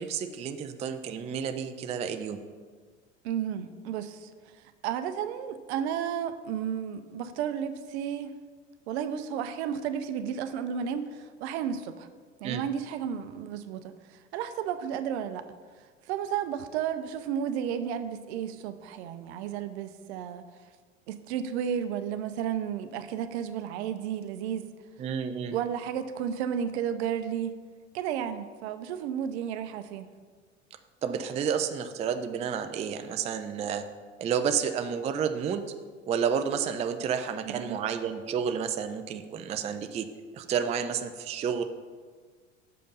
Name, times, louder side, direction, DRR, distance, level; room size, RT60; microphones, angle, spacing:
voice 1, 0.0-2.4 12.4-12.7 25.0-25.5 31.0-33.8 34.2-35.7 36.1-40.1 40.3-41.6, right 7 dB, 20° right, 8 dB, 0.4 m, -30 dB
voice 2, 3.2-4.3 4.8-8.3 8.9-12.1 12.4-15.5 16.1-20.4 21.1-24.7 25.5-27.6 27.9-30.1 37.5-37.8, right 8 dB, 60° right, 11 dB, 0.6 m, -32 dB
6.7 x 5.1 x 5.5 m, 1.5 s
figure-of-eight pair, 75°, 38 cm